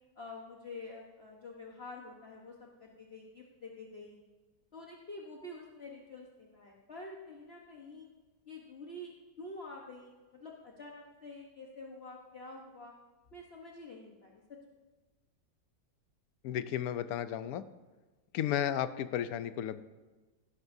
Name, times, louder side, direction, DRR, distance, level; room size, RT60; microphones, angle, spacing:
voice 1, 0.2-4.2 4.7-8.1 8.5-12.9 13.3-14.4, left 2 dB, 40° left, -1 dB, 1.2 m, -48 dB
voice 2, 16.4-17.6 18.3-19.8, left 10 dB, 70° left, 13 dB, 1.0 m, -33 dB
16.5 x 12.0 x 2.7 m, 1.2 s
omnidirectional pair, 1.9 m